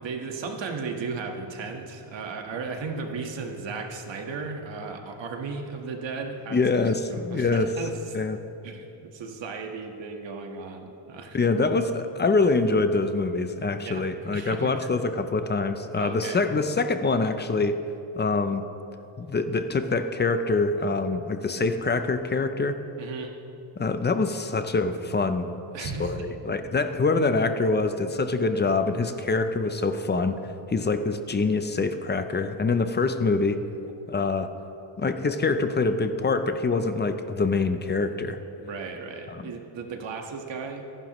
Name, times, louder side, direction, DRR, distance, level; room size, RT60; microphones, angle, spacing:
voice 1, 0.0-6.6 7.1-8.2 8.6-11.4 13.8-14.9 16.0-16.4 23.0-23.3 25.7-26.4 38.6-40.8, right 4 dB, 60° right, 3 dB, 1.5 m, -35 dB
voice 2, 6.5-7.7 8.1-8.4 11.3-17.8 18.2-18.6 19.2-22.8 23.8-25.5 25.8-30.4 30.7-33.6 34.1-34.5 35.0-38.4 39.3-39.4, left 3 dB, 20° left, 9 dB, 0.5 m, -25 dB
25.0 x 11.0 x 3.1 m, 2.8 s
wide cardioid pair, 175°, 50 cm